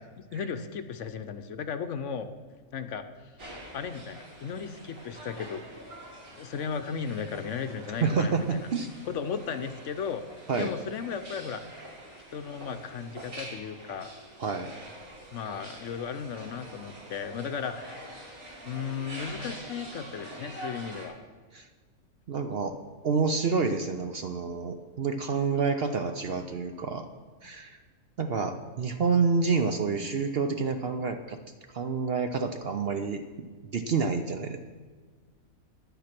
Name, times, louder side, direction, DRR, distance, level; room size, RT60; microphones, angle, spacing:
voice 1, 0.3-2.3 2.7-3.0 3.7-5.6 6.3-8.7 9.0-10.2 10.6-11.6 12.3-14.1 15.3-18.1 18.7-21.1, left 6 dB, 65° left, 9 dB, 0.9 m, -35 dB
sound 1, 3.4-21.1, right 1 dB, 85° right, 3.2 m, -45 dB
voice 2, 8.0-8.9 10.5-10.7 14.4-14.7 21.5-21.7 22.3-22.8 23.0-27.1 27.4-27.8 28.2-31.4 31.7-34.6, right 5 dB, 55° right, 7 dB, 0.7 m, -28 dB
10.5 x 9.2 x 5.9 m, 1.5 s
omnidirectional pair, 1.5 m